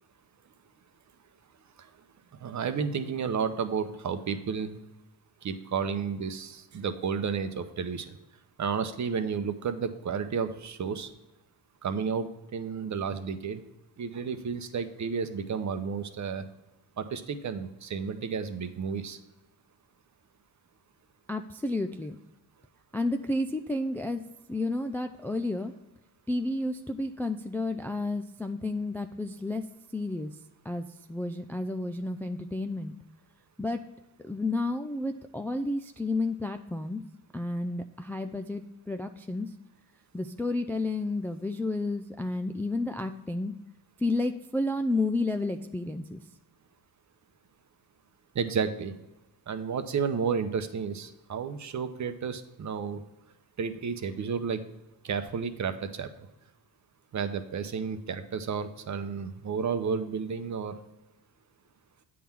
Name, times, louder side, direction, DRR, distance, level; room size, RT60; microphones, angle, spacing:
voice 1, 2.4-4.8 5.4-8.2 8.6-11.1 11.8-13.6 14.0-16.5 17.0-19.2 48.3-49.0 49.5-53.0 53.6-54.6 55.0-56.3 57.1-60.7, right 6 dB, 40° right, 9 dB, 0.8 m, -32 dB
voice 2, 21.3-22.2 22.9-24.2 24.5-25.7 26.3-29.6 29.9-30.3 30.7-32.9 33.6-33.8 34.2-37.0 37.3-39.5 40.1-43.5 44.0-46.2, left 2 dB, 5° left, 6 dB, 0.3 m, -31 dB
8.5 x 3.7 x 5.8 m, 0.97 s
supercardioid pair, 65°, 45 cm